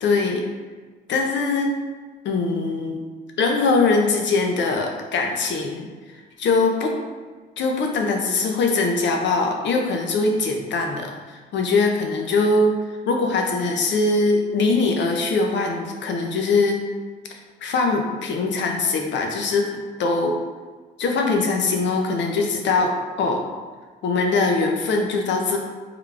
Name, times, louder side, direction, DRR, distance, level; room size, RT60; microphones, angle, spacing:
voice 1, 0.0-0.4 1.1-1.7 2.2-3.0 3.4-5.9 6.4-7.0 7.6-12.7 13.1-16.8 17.6-20.4 21.0-23.4 24.0-25.6, left 3 dB, 65° left, 2 dB, 0.6 m, -22 dB
3.7 x 2.3 x 3.3 m, 1.4 s
cardioid pair, 90°, 20 cm